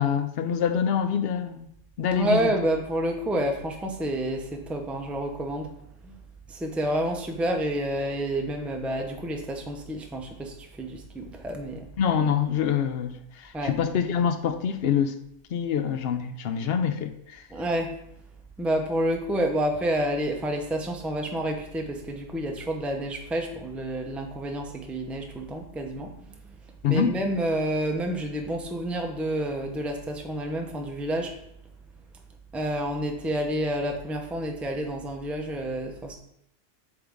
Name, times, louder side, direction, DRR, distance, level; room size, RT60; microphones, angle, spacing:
voice 1, 0.0-1.7 2.0-2.5 12.0-15.2 15.5-17.4 26.8-27.2, left 8 dB, 65° left, 9 dB, 0.7 m, -25 dB
voice 2, 2.1-5.7 6.0-6.1 6.5-11.9 13.5-13.8 17.5-18.0 18.6-26.3 26.9-31.3 32.5-36.2, right 1 dB, ahead, 2 dB, 0.5 m, -29 dB
7.9 x 3.6 x 3.5 m, 0.76 s
omnidirectional pair, 1.3 m